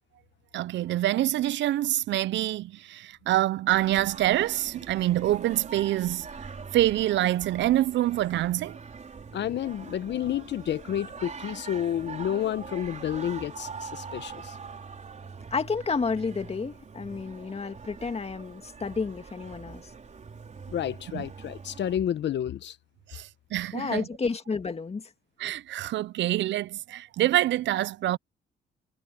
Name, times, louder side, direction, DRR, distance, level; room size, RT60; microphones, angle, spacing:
voice 1, 0.5-6.3 6.7-8.8 21.1-21.2 23.1-24.0 25.4-28.2, right 14 dB, 65° right, 0.5 m, -26 dB
Singing, 3.7-22.0, right 5 dB, 35° right, 4.6 m, -43 dB
voice 2, 9.3-14.6 20.7-22.8, left 10 dB, 65° left, 1.0 m, -30 dB
voice 3, 15.5-19.9 23.7-25.1, left 4 dB, 30° left, 2.2 m, -31 dB
cardioid pair, 90°, 20 cm